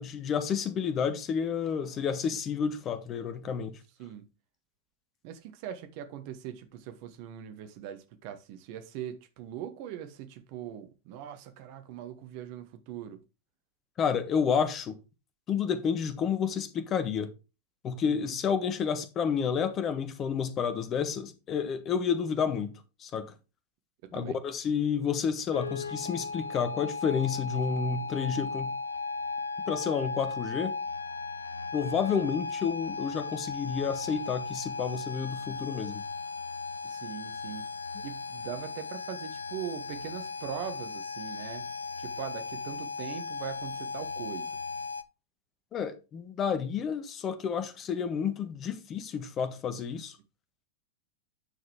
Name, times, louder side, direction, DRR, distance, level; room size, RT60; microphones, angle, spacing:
voice 1, 0.0-3.8 14.0-15.0 15.5-17.3 17.8-23.3 24.1-28.7 29.7-30.8 31.7-36.0 45.7-50.2, left 7 dB, 30° left, 1.3 m, -30 dB
voice 2, 5.2-13.2 18.0-18.4 24.0-24.4 36.8-37.7 38.0-41.7 42.0-44.6, right 9 dB, 45° right, 1.3 m, -41 dB
sound 1, 25.5-45.0, left 4 dB, 80° left, 0.5 m, -36 dB
9.5 x 6.5 x 3.5 m
figure-of-eight pair, 90°, 0 cm